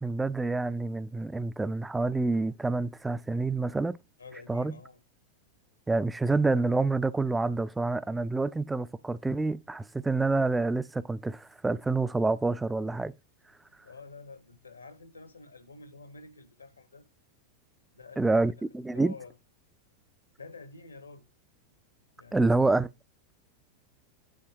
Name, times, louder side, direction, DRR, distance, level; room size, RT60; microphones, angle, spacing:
voice 1, 0.0-4.0 4.5-4.8 5.9-13.1 18.2-19.1 22.3-22.9, right 3 dB, 10° right, 0.3 m, -27 dB
voice 2, 4.2-5.0 13.8-17.0 17.9-18.4 18.9-19.4 20.4-21.2 22.2-22.6, left 4 dB, 80° left, 1.1 m, -48 dB
8.8 x 3.4 x 4.6 m
figure-of-eight pair, 90°, 0 cm